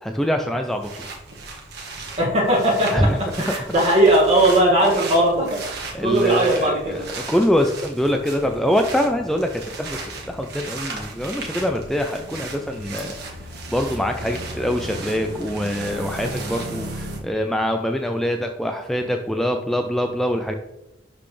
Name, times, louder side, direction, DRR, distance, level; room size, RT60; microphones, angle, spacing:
voice 1, 0.0-1.1 2.9-3.5 5.9-13.4 13.7-20.6, equal, ahead, 3 dB, 0.4 m, -24 dB
sound 1, 0.7-17.2, right 2 dB, 55° right, 1.5 m, -35 dB
voice 2, 2.2-3.1 3.4-7.0, right 1 dB, 35° right, -3 dB, 2.1 m, -18 dB
11.5 x 4.1 x 3.3 m, 0.93 s
head